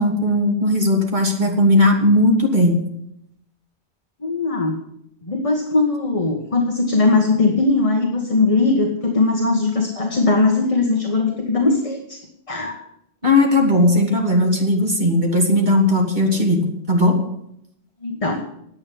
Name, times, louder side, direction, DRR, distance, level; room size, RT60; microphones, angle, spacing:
voice 1, 0.0-2.8 13.2-17.2, left 1 dB, 45° right, 0 dB, 2.8 m, -17 dB
voice 2, 4.2-4.8 5.2-12.2 12.5-12.8 18.0-18.4, left 3 dB, 30° left, 1 dB, 1.6 m, -19 dB
9.9 x 8.5 x 10.0 m, 0.77 s
omnidirectional pair, 1.1 m